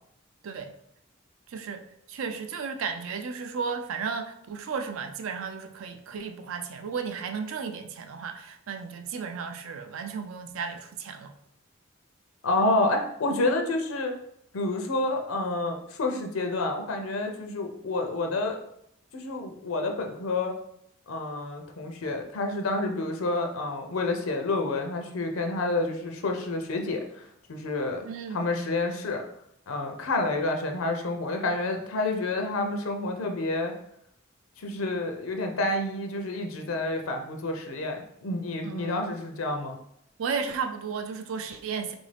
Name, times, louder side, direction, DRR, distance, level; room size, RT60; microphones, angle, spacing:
voice 1, 1.5-11.3 28.0-28.4 38.6-39.1 40.2-41.9, right 5 dB, 75° right, 0.4 m, -34 dB
voice 2, 12.4-14.1 14.5-18.6 19.1-20.6 21.1-29.2 29.7-33.7 34.6-39.8, left 2 dB, 90° left, 0.5 m, -29 dB
3.8 x 2.6 x 3.3 m
head